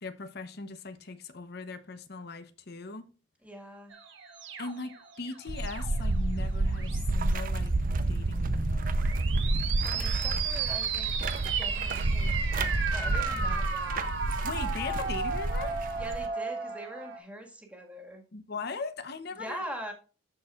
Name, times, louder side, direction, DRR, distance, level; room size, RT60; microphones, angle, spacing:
voice 1, 0.0-3.1 4.6-9.0 14.4-15.8 18.3-19.6, left 4 dB, 55° left, 0.9 m, -39 dB
voice 2, 3.4-3.9 9.8-11.1 11.5-14.1 15.9-18.2 19.4-19.9, equal, 5° right, 1.7 m, -43 dB
sound 1, 3.9-6.1 6.7-7.3 9.0-17.2, right 5 dB, 70° right, 1.3 m, -34 dB
sound 2, 5.5-16.3, right 2 dB, 45° right, 0.6 m, -30 dB
13.0 x 4.4 x 2.4 m
head